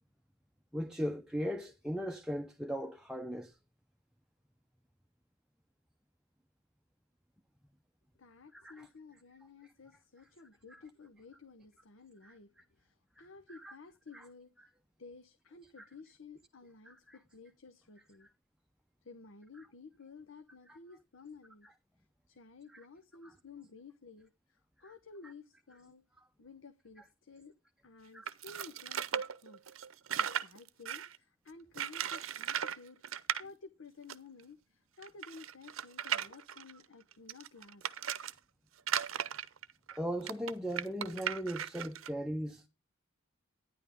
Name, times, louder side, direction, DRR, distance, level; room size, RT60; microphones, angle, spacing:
voice 1, 0.7-3.5 8.5-8.9 10.7-10.8 12.2-12.3 13.2-13.7 14.1-14.2 14.6-14.7 15.8-15.9 16.9-17.2 20.7-20.8 22.7-22.8 24.8-24.9 28.1-28.2 39.9-42.6, equal, 5° right, 0.6 m, -38 dB
voice 2, 8.2-12.5 12.8-14.5 15.0-18.3 19.0-21.7 22.3-26.0 26.4-27.5 27.8-29.6 30.2-33.0 33.4-37.9, left 4 dB, 70° left, 0.8 m, -54 dB
sound 1, 28.3-31.2 31.7-32.8 33.0-33.4 34.1-34.2 34.4-34.5 35.0-38.3 38.8-42.1, right 9 dB, 80° right, 0.8 m, -37 dB
11.5 x 10.0 x 3.6 m
head